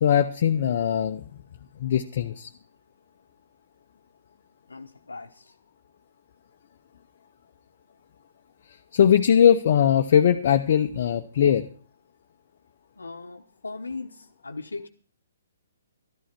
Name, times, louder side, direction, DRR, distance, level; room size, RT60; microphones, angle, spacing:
voice 1, 0.0-1.2 1.8-2.5 8.9-11.7, left 9 dB, 50° left, 5 dB, 0.8 m, -20 dB
voice 2, 4.7-5.5 13.0-14.9, left 3 dB, 85° left, 1 dB, 1.0 m, -38 dB
13.0 x 11.5 x 6.0 m, 0.42 s
figure-of-eight pair, 135°, 0 cm